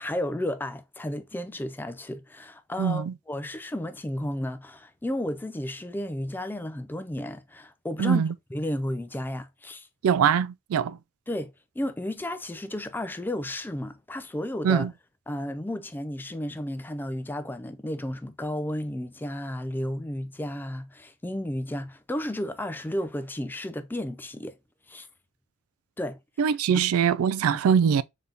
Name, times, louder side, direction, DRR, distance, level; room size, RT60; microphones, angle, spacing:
voice 1, 0.0-8.2 8.5-9.9 11.3-14.9 15.3-24.6 24.9-25.1 26.0-26.9, left 1 dB, 10° left, 0.3 m, -33 dB
voice 2, 2.8-3.1 8.0-8.3 10.0-11.0 14.6-14.9 26.4-28.0, right 7 dB, 85° right, 0.3 m, -22 dB
3.7 x 3.5 x 2.7 m
head